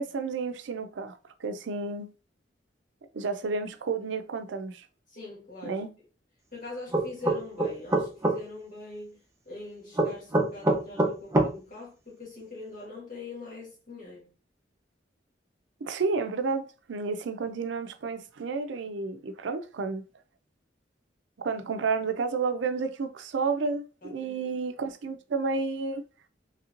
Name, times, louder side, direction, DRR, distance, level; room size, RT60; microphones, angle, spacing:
voice 1, 0.0-2.1 3.1-4.9 5.6-5.9 15.8-20.0 21.4-26.0, right 4 dB, 90° right, 0.4 m, -31 dB
voice 2, 5.1-5.8 6.5-9.2 9.4-14.3 24.0-24.4, left 3 dB, 50° left, 1.6 m, -43 dB
sound 1, 6.9-8.4 10.0-11.5, right 2 dB, 15° right, 0.5 m, -23 dB
3.2 x 2.9 x 2.5 m
head